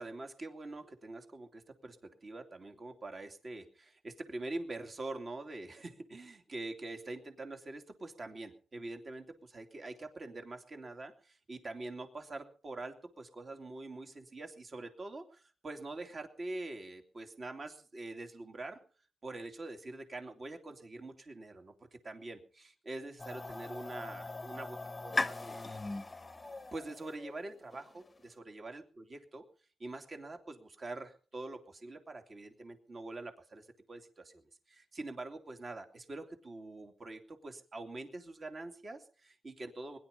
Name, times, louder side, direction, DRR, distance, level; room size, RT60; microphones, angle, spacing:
voice 1, 0.0-18.8 19.2-25.8 26.7-29.4 29.8-34.4 34.7-40.0, right 2 dB, 35° right, 4 dB, 2.8 m, -45 dB
sound 1, 23.2-28.2, left 3 dB, 20° left, 1.1 m, -40 dB
21.5 x 11.0 x 5.5 m, 0.41 s
wide cardioid pair, 135°, 0 cm